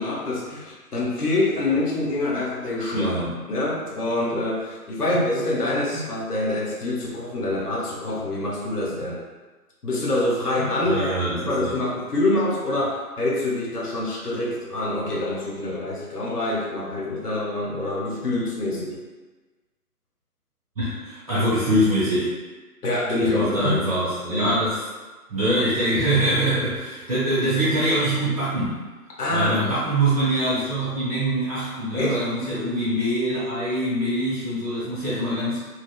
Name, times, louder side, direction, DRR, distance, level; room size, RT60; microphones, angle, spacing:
voice 1, 0.0-3.1 3.5-9.2 9.8-11.1 11.4-19.0 22.8-23.9 24.3-24.6 29.2-29.7 31.9-32.2, left 2 dB, 75° left, -3 dB, 0.8 m, -25 dB
voice 2, 2.9-3.3 10.8-11.7 20.7-22.3 23.3-24.8 25.3-28.8 29.3-35.7, right 1 dB, 25° right, -13 dB, 0.8 m, -24 dB
2.7 x 2.0 x 2.2 m, 1.3 s
figure-of-eight pair, 150°, 47 cm